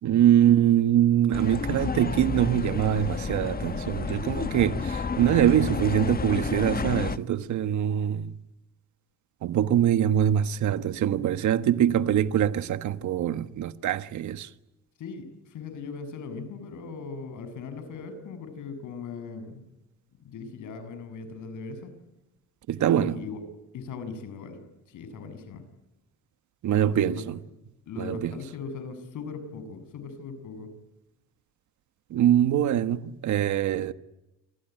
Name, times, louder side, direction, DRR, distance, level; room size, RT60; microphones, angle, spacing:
voice 1, 0.0-8.3 9.4-14.5 22.7-23.2 26.6-27.4 28.0-28.3 32.1-33.9, right 10 dB, 75° right, 1.4 m, -23 dB
sound 1, 1.3-7.2, left 5 dB, 30° left, 1.4 m, -31 dB
voice 2, 15.0-19.6 20.2-21.9 22.9-23.4 23.7-25.6 26.7-27.2 27.9-30.7, left 4 dB, 80° left, 7.1 m, -39 dB
29.0 x 21.5 x 9.3 m
cardioid pair, 90°, 30 cm